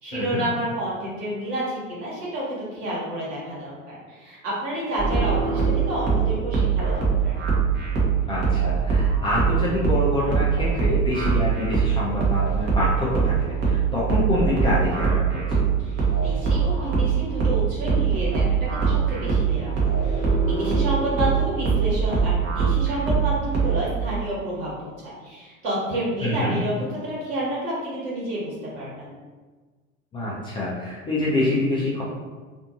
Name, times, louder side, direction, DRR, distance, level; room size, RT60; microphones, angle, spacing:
voice 1, 0.0-7.4 15.8-26.7 27.0-29.1, right 1 dB, 50° right, -7 dB, 1.4 m, -30 dB
sound 1, 5.0-23.8, right 6 dB, 25° right, 0.8 m, -22 dB
voice 2, 8.3-15.6 26.2-26.6 30.1-32.0, left 1 dB, 15° left, -7 dB, 0.4 m, -26 dB
2.6 x 2.5 x 2.6 m, 1.4 s
figure-of-eight pair, 85°, 41 cm